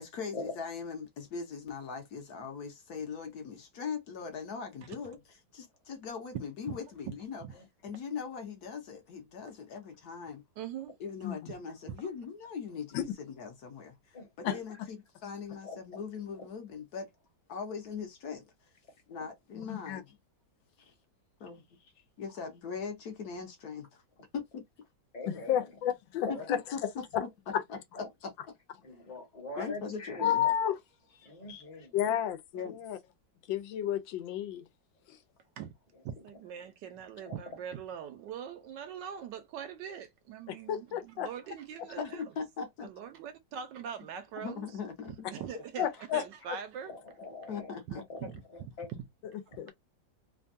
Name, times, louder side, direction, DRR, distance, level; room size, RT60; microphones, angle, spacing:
voice 1, 0.0-5.2 5.5-7.4 7.8-10.4 11.0-17.1 17.5-18.5 19.1-20.2 20.8-20.9 21.4-21.6 22.2-24.0 24.3-24.6 26.3-27.3 27.7-27.8 28.2-28.3 29.6-30.5 31.2-31.9 32.5-32.8 42.0-42.9 44.4-45.3 47.5-48.0, left 6 dB, 60° left, 1.1 m, -40 dB
voice 2, 6.3-6.8 7.4-7.5 10.6-10.9 11.5-11.6 11.9-12.0 35.6-35.7 36.0-42.2 42.8-44.7 45.1-46.9 48.2-49.1, right 8 dB, 75° right, 1.2 m, -42 dB
voice 3, 7.6-8.0 14.1-14.6 15.6-15.8 16.4-16.5 25.1-25.7 26.2-26.5 27.9-28.1 28.8-30.5 31.2-31.9 37.3-37.4 46.9-48.2 48.5-48.9, left 2 dB, 30° left, 0.9 m, -43 dB
voice 4, 19.7-20.0 25.2-26.6 27.1-27.2 30.2-30.8 31.9-32.4 32.6-33.0 33.5-34.6 35.1-35.2 40.7-41.3 45.8-46.2 49.6-49.7, left 10 dB, 85° left, 1.3 m, -31 dB
3.3 x 2.2 x 2.5 m
omnidirectional pair, 2.1 m